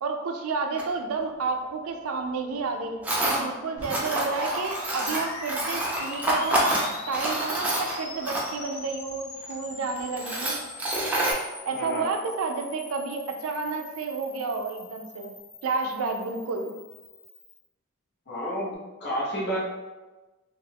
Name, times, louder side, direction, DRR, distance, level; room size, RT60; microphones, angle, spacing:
voice 1, 0.0-6.6 7.1-10.6 11.7-15.4 15.6-16.7, right 4 dB, 75° right, 4 dB, 0.4 m, -31 dB
Tools, 0.8-0.9 3.0-3.4 3.8-8.7 9.4-9.5 10.0-11.3, right 1 dB, 5° right, 0.5 m, -27 dB
sound 1, 3.8-17.6, left 2 dB, 75° left, 0.6 m, -42 dB
voice 2, 11.7-12.1 18.3-18.7 19.0-19.6, equal, 55° left, -6 dB, 0.9 m, -30 dB
2.4 x 2.3 x 3.3 m, 1.2 s
head